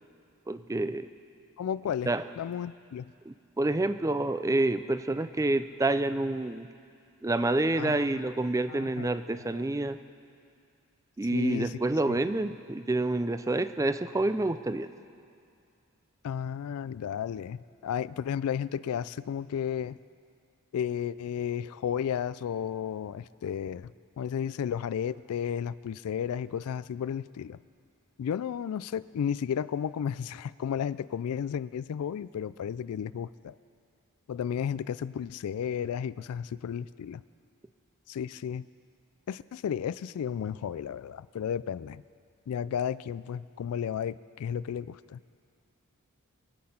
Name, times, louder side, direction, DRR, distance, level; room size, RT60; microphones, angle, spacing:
voice 1, 0.5-1.1 2.1-2.2 3.3-6.7 7.2-10.0 11.2-14.9, right 2 dB, 15° right, 11 dB, 0.4 m, -28 dB
voice 2, 1.6-3.1 7.8-8.1 8.7-9.1 9.5-9.6 11.3-12.2 16.2-20.0 20.7-27.6 28.2-33.5 34.3-37.2 38.1-38.7 39.3-42.0 42.5-45.2, left 8 dB, 80° left, 17 dB, 0.3 m, -33 dB
24.0 x 8.6 x 5.7 m, 2.4 s
head